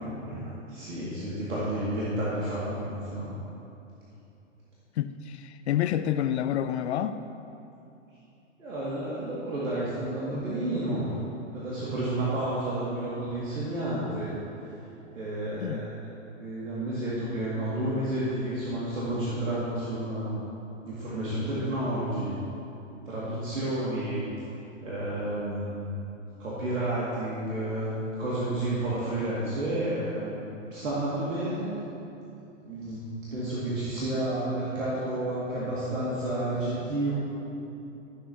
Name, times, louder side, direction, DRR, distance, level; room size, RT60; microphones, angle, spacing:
voice 1, 0.0-0.4 0.7-3.3 8.6-11.2 11.5-14.3 15.1-15.9 16.4-20.3 20.8-22.3 23.0-24.2 24.8-25.9 26.4-31.7 32.6-33.0 33.3-37.2, right 1 dB, 80° right, -9 dB, 2.3 m, -31 dB
voice 2, 5.0-7.2 15.6-15.8, left 11 dB, 60° left, 11 dB, 0.5 m, -28 dB
14.5 x 7.4 x 2.8 m, 2.8 s
hypercardioid pair, 115°, 38 cm